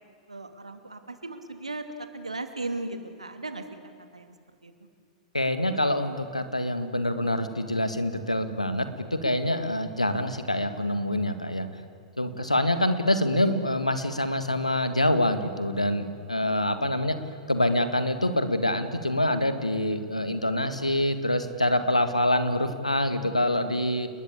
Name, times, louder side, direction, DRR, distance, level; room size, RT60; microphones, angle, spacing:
voice 1, 0.3-3.6 4.1-4.3 4.6-4.7, right 2 dB, 80° right, 8 dB, 2.6 m, -36 dB
voice 2, 5.3-11.7 12.2-17.2 17.5-24.1, left 1 dB, 90° left, 10 dB, 2.0 m, -26 dB
30.0 x 21.0 x 8.6 m, 2.3 s
figure-of-eight pair, 95°, 3 cm